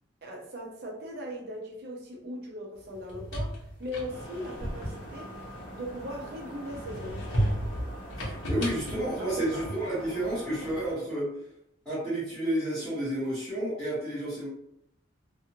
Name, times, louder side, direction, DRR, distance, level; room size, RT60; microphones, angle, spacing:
voice 1, 0.2-5.3 5.7-7.4 9.2-9.6, equal, 50° right, 0 dB, 0.6 m, -39 dB
sound 1, 2.9-6.2 6.7-10.0, equal, 75° left, 0.9 m, -34 dB
sound 2, 4.1-10.9, equal, 45° left, 0.8 m, -44 dB
voice 2, 8.2-11.3 11.8-14.5, right 1 dB, 5° left, -13 dB, 1.1 m, -31 dB
2.5 x 2.4 x 2.8 m, 0.74 s
head